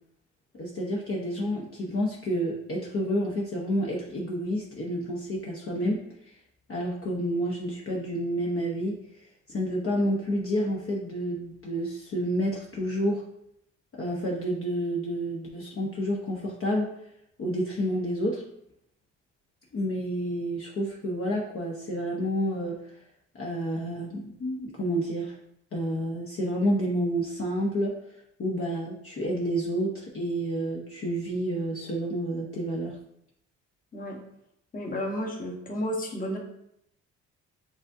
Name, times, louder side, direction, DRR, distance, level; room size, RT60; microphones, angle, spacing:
voice 1, 0.5-6.0 6.7-9.2 9.5-13.2 14.0-16.9 17.4-18.4 19.7-22.8 23.3-25.4 25.7-27.9 28.4-33.0, equal, 45° left, -3 dB, 0.9 m, -29 dB
voice 2, 34.7-36.4, equal, 30° left, 0 dB, 1.1 m, -32 dB
7.2 x 2.6 x 2.6 m, 0.77 s
cardioid pair, 90°, 30 cm